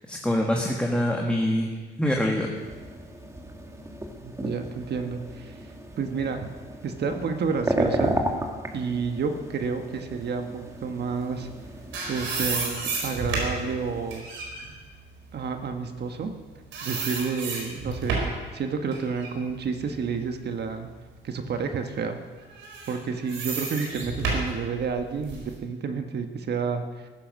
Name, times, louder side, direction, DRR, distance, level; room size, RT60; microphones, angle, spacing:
voice 1, 0.1-1.7 2.0-2.5, left 1 dB, 5° left, 0 dB, 1.7 m, -24 dB
sound 1, 2.6-14.2, right 1 dB, 15° right, 2.0 m, -34 dB
voice 2, 4.2-5.6 6.0-6.5 6.8-8.2 8.7-11.5 12.1-14.3 15.3-16.3 16.8-18.2 18.5-20.9 21.2-22.2 22.9-27.1, right 5 dB, 55° right, 6 dB, 1.3 m, -30 dB
sound 2, 11.5-16.4 16.7-18.4 18.9-20.9 21.3-21.5 22.5-25.5, right 4 dB, 80° right, 4.3 m, -32 dB
15.0 x 10.0 x 6.2 m, 1.4 s
cardioid pair, 90°, 20 cm